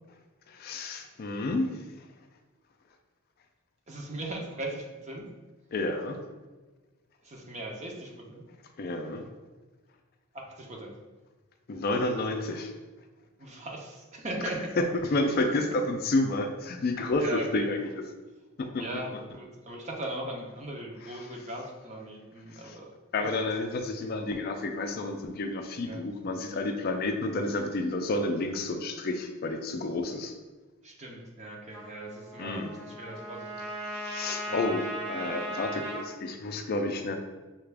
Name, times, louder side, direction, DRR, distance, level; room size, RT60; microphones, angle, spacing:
voice 1, 0.5-1.7 5.7-6.2 8.8-9.2 11.7-12.7 14.8-14.9 15.1-17.9 18.6-19.0 22.5-22.7 23.1-30.3 32.4-32.7 33.9-34.8 35.1-37.2, left 2 dB, 45° left, 5 dB, 0.4 m, -30 dB
voice 2, 3.9-5.3 7.2-8.4 10.3-11.0 13.4-14.8 15.1-15.2 15.5-15.6 17.0-17.7 18.7-22.9 23.2-23.4 25.8-26.0 30.8-33.7 34.1-34.6, right 1 dB, 30° right, 0 dB, 0.7 m, -39 dB
Trumpet, 31.7-36.1, right 1 dB, 55° right, 1.0 m, -37 dB
5.7 x 2.4 x 3.3 m, 1.2 s
head